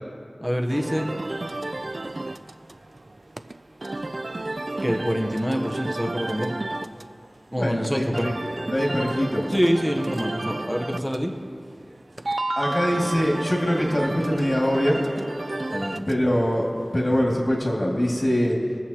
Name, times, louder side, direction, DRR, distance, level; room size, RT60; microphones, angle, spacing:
voice 1, 0.4-1.1 4.8-6.5 7.5-8.3 9.5-11.3 15.7-16.1, equal, 5° right, 3 dB, 0.9 m, -25 dB
sound 1, 0.7-17.4, right 2 dB, 55° right, 0.3 m, -32 dB
voice 2, 7.6-8.3 8.7-9.5 12.6-15.0 16.1-16.6 16.9-18.6, equal, 45° left, -3 dB, 2.2 m, -23 dB
21.5 x 7.7 x 2.9 m, 2.3 s
wide cardioid pair, 55°, 0 cm